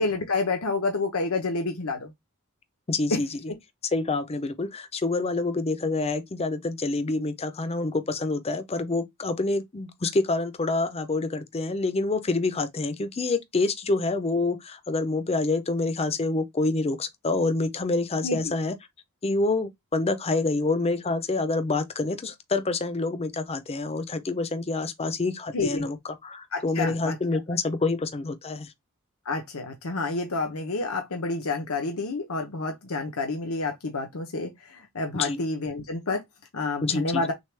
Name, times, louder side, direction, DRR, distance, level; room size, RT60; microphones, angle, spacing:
voice 1, 0.0-2.1 3.1-3.2 18.2-18.5 25.5-25.8 26.5-27.2 29.2-36.2 36.5-37.3, left 3 dB, 75° left, 0.9 m, -29 dB
voice 2, 2.9-3.3 3.9-18.8 19.2-26.0 26.2-28.7 35.1-35.4 36.8-37.2, left 3 dB, 30° left, 0.6 m, -27 dB
6.4 x 2.3 x 3.4 m
head